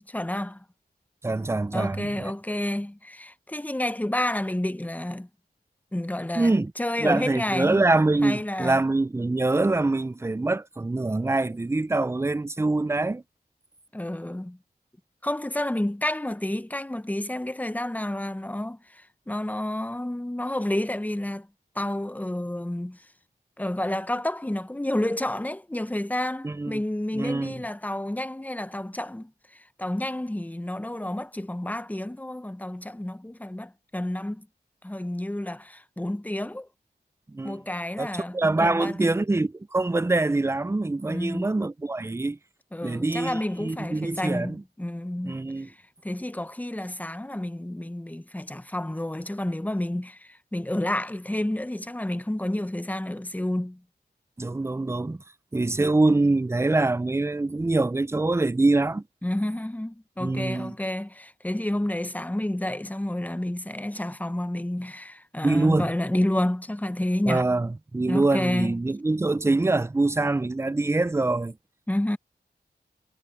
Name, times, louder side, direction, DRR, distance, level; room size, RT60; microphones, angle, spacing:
voice 1, 0.1-0.6 1.7-5.3 5.9-7.8 8.2-8.8 13.9-14.6 15.2-21.5 21.7-23.0 23.6-34.5 34.8-36.7 37.4-39.2 41.1-41.5 42.7-45.7 46.0-53.8 59.2-67.4 68.1-68.8 71.9-72.2, left 1 dB, 10° left, 0.8 m, -30 dB
voice 2, 1.2-2.3 6.4-6.7 7.0-13.2 26.4-26.8 27.1-27.5 37.3-37.6 38.0-42.4 42.8-44.6 45.2-45.7 54.4-55.2 55.5-59.0 60.2-60.7 65.4-65.9 67.3-71.6, right 2 dB, 15° right, 0.5 m, -24 dB
wide cardioid pair, 65°, 18 cm